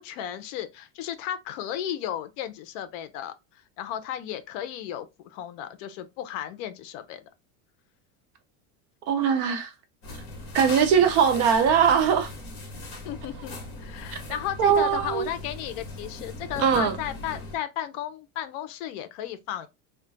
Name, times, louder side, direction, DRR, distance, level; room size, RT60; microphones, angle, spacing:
voice 1, 0.0-3.3 3.8-7.2 13.0-19.7, left 11 dB, 65° left, 0.6 m, -34 dB
voice 2, 9.1-9.7 10.5-12.3 14.6-15.3 16.6-17.0, right 7 dB, 40° right, 0.5 m, -21 dB
sound 1, 10.0-17.6, left 2 dB, 40° left, 1.1 m, -39 dB
2.3 x 2.2 x 3.8 m
cardioid pair, 160°, 42 cm